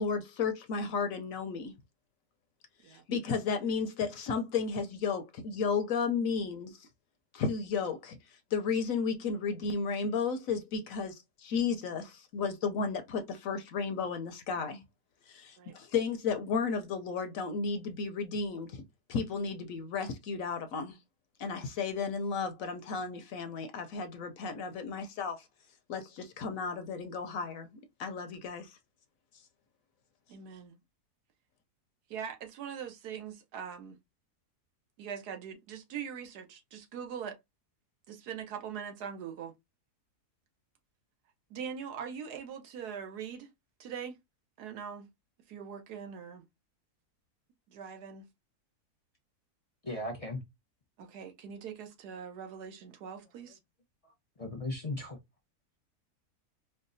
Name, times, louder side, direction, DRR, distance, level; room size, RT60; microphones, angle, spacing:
voice 1, 0.0-1.8 2.9-6.9 7.3-8.2 8.5-14.8 15.3-18.8 19.1-21.0 21.4-25.4 25.9-28.8, left 5 dB, 70° left, 0.9 m, -33 dB
voice 2, 30.3-30.8 32.1-34.0 35.0-37.4 38.1-39.5 41.5-43.5 43.8-44.2 44.6-45.1 45.5-46.4 47.7-48.2 51.0-53.6, right 7 dB, 80° right, 1.4 m, -42 dB
voice 3, 49.8-50.4 54.0-54.1 54.4-55.2, left 2 dB, 35° left, 0.6 m, -36 dB
4.5 x 2.2 x 2.6 m
omnidirectional pair, 1.7 m